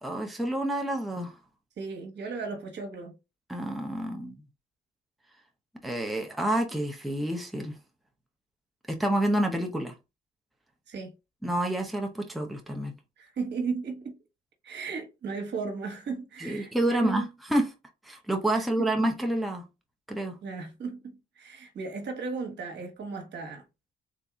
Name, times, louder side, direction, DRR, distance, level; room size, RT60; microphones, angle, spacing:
voice 1, 0.0-1.4 3.5-4.3 5.8-7.7 8.9-9.9 11.4-12.9 16.4-17.2 17.5-17.7 18.0-19.6 20.1-20.4, right 1 dB, ahead, 0.8 m, -28 dB
voice 2, 1.8-3.1 10.9-11.1 13.2-14.2 14.6-17.3 18.5-18.9 20.4-23.6, right 4 dB, 60° right, 1.3 m, -35 dB
3.7 x 2.7 x 3.6 m
cardioid pair, 90°, 20 cm